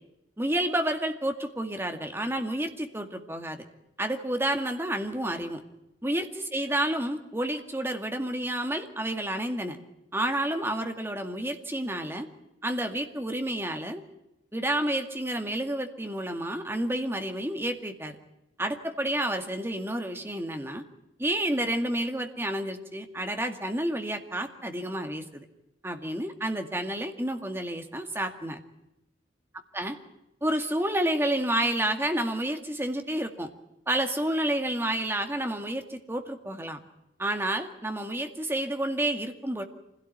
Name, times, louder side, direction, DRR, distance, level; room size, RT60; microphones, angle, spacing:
voice 1, 0.4-3.7 4.0-5.6 6.0-9.8 10.1-12.3 12.6-14.0 14.5-18.2 18.6-20.8 21.2-25.5 25.8-28.6 29.7-30.0 30.4-33.5 33.9-36.8 37.2-39.6, right 1 dB, 15° right, 6 dB, 2.0 m, -30 dB
25.5 x 17.0 x 9.3 m, 0.90 s
head